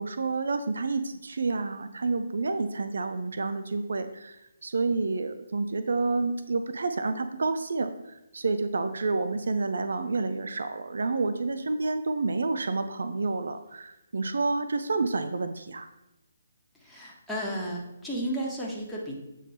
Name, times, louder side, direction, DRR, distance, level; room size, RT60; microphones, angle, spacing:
voice 1, 0.0-15.9, right 3 dB, 70° right, 9 dB, 0.4 m, -29 dB
voice 2, 16.8-19.1, right 1 dB, ahead, -6 dB, 1.2 m, -33 dB
7.3 x 3.6 x 4.2 m, 0.90 s
figure-of-eight pair, 145°, 0 cm